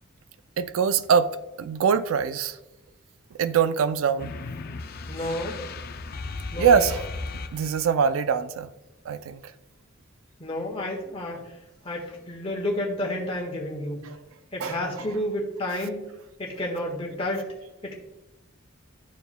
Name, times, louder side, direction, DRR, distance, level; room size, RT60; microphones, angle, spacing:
voice 1, 0.6-1.3 1.6-2.6 3.4-4.3 6.6-7.1 7.5-8.7 9.1-9.4 14.1-14.2 14.6-14.8, right 6 dB, 75° right, 0.4 m, -23 dB
sound 1, 4.2-8.0, left 3 dB, 45° left, 0.4 m, -36 dB
voice 2, 5.1-5.6 6.5-6.9 10.4-11.4 11.8-14.0 14.5-16.1 16.4-17.5 17.8-18.0, left 1 dB, 25° left, 1.4 m, -30 dB
12.5 x 4.6 x 2.2 m
head